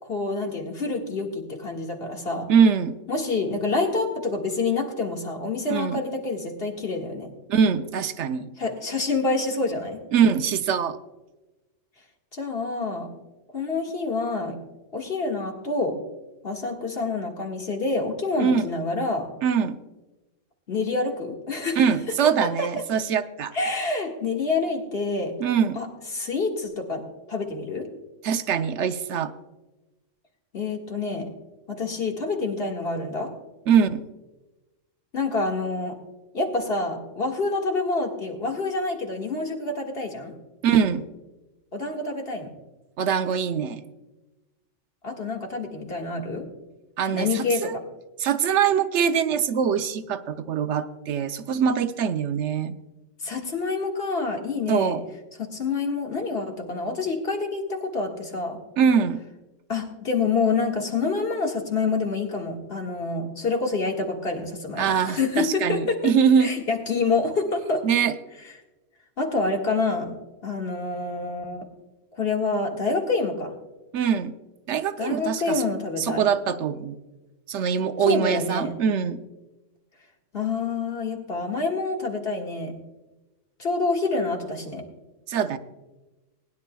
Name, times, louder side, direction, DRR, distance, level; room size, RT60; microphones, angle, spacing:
voice 1, 0.0-2.5 3.1-7.3 8.6-10.0 12.3-13.2 13.5-14.6 14.9-16.0 16.4-19.3 20.7-21.8 22.2-22.7 23.5-25.4 25.8-25.9 26.1-27.9 30.5-31.3 31.7-33.3 35.1-36.0 36.3-40.3 41.7-42.5 45.0-46.5 47.1-47.8 53.2-55.0 55.4-58.6 59.7-66.1 66.4-67.8 69.2-70.2 70.4-71.7 72.2-73.5 75.0-76.2 78.1-78.7 80.3-82.8 83.6-84.8, left 3 dB, 50° left, 1 dB, 2.0 m, -27 dB
voice 2, 2.5-3.0 5.7-6.0 7.5-8.5 10.1-11.0 18.4-18.7 19.4-19.8 21.8-23.5 25.4-25.8 28.2-29.3 33.7-34.0 40.6-41.0 43.0-43.8 47.0-47.7 48.2-52.7 54.7-55.0 58.8-59.2 64.8-66.5 67.8-68.1 73.9-74.3 74.7-75.6 76.0-77.0 77.5-79.2 85.3-85.6, right 7 dB, 70° right, 10 dB, 0.9 m, -23 dB
20.5 x 11.0 x 2.3 m, 1.1 s
omnidirectional pair, 1.3 m